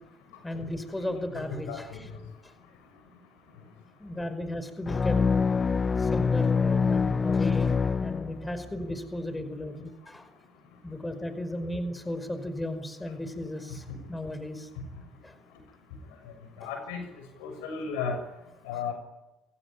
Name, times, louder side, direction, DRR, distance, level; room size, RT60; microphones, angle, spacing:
voice 1, 0.4-1.9 2.4-2.5 4.0-5.2 6.0-10.3 10.8-14.7 15.2-15.4 16.6-16.7, left 1 dB, 15° left, 9 dB, 5.2 m, -35 dB
voice 2, 1.7-2.0 16.6-17.0 17.4-18.2 18.6-18.9, left 6 dB, 90° left, 6 dB, 6.7 m, -33 dB
sound 1, 4.9-8.7, left 5 dB, 35° left, 1.1 m, -25 dB
29.0 x 16.5 x 9.9 m, 0.97 s
supercardioid pair, 65°, 0 cm